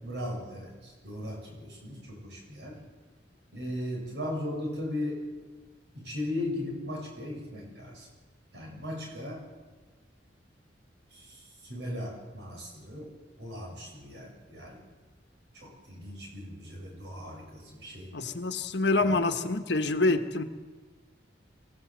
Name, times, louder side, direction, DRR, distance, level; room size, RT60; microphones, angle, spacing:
voice 1, 0.0-2.8 3.5-5.3 5.9-8.1 8.5-9.4 11.1-13.1 13.4-14.8 15.5-18.1 19.0-19.2, left 1 dB, 65° right, 0 dB, 7.7 m, -37 dB
voice 2, 18.1-20.4, left 2 dB, 65° left, 7 dB, 1.5 m, -26 dB
24.5 x 16.5 x 8.0 m, 1.4 s
head